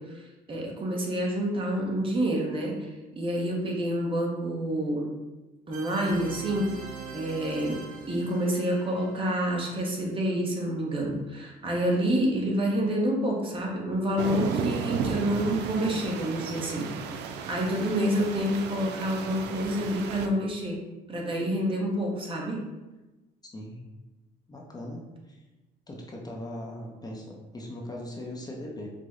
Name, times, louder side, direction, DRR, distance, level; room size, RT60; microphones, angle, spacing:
voice 1, 0.0-2.9 3.2-5.1 5.7-6.7 7.1-7.8 8.1-20.8 21.1-22.6, equal, 30° right, -1 dB, 0.9 m, -28 dB
sound 1, 5.7-10.3, right 5 dB, 55° right, 0.8 m, -44 dB
sound 2, 14.2-20.3, right 6 dB, 85° right, 0.4 m, -34 dB
voice 2, 23.5-23.8 24.5-25.4 25.9-28.9, left 1 dB, 25° left, -1 dB, 0.6 m, -39 dB
5.0 x 2.1 x 3.7 m, 1.1 s
cardioid pair, 110°, 17 cm